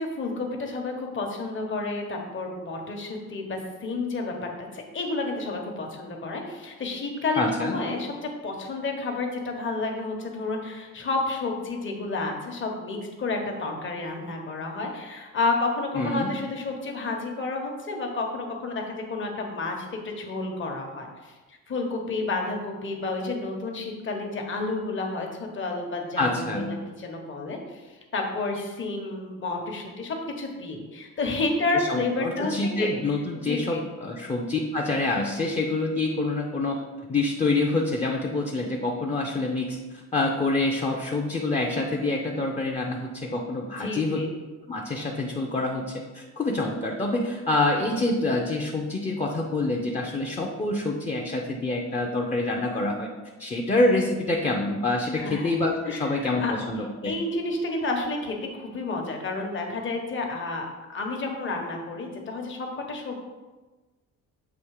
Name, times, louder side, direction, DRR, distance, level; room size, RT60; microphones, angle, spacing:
voice 1, 0.0-32.9 33.5-33.8 43.8-44.3 55.2-55.5 55.9-56.5 57.0-63.2, left 3 dB, 40° left, 1 dB, 1.2 m, -30 dB
voice 2, 7.4-7.8 16.0-16.3 26.2-26.8 31.7-36.8 37.1-44.2 44.7-53.1 53.4-57.2, left 2 dB, 20° left, -1 dB, 0.7 m, -26 dB
7.0 x 2.9 x 4.8 m, 1.2 s
cardioid pair, 90°, 30 cm